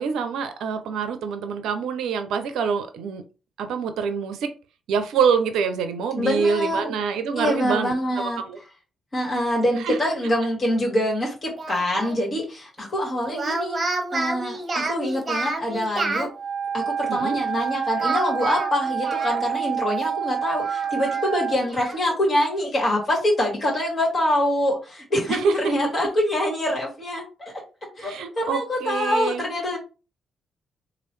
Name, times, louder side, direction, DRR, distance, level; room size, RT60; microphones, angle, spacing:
voice 1, 0.0-3.2 3.6-4.5 4.9-8.6 9.8-10.0 17.1-17.4 25.3-25.5 28.0-29.4, right 6 dB, 75° right, 8 dB, 0.5 m, -25 dB
voice 2, 6.1-6.9 7.3-8.4 9.1-13.8 14.1-16.3 16.7-27.5 28.0-29.8, left 1 dB, 45° left, -3 dB, 1.7 m, -25 dB
Speech, 11.6-12.2 13.3-16.3 18.0-19.7 20.0-20.1 20.6-22.0, right 3 dB, 40° right, 0.8 m, -29 dB
Wind instrument woodwind instrument, 16.3-21.6, right 8 dB, 15° right, 1.5 m, -28 dB
3.0 x 2.5 x 3.1 m, 0.32 s
hypercardioid pair, 45°, 0 cm